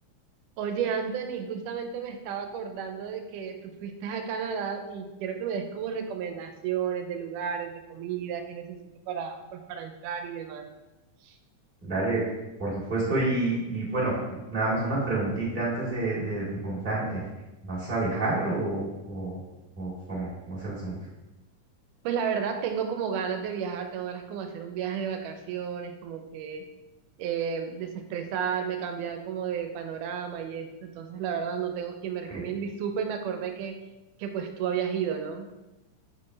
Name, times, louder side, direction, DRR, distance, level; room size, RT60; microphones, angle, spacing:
voice 1, 0.6-8.8 9.1-10.7 11.2-11.4 22.0-26.7 27.2-33.8 34.2-35.5, right 7 dB, 85° right, 6 dB, 2.2 m, -32 dB
voice 2, 11.8-12.2 12.6-14.2 14.5-17.2 17.6-19.4 19.8-20.9 32.3-32.4, right 2 dB, 20° right, -7 dB, 1.7 m, -29 dB
8.2 x 4.4 x 3.2 m, 1.0 s
omnidirectional pair, 3.6 m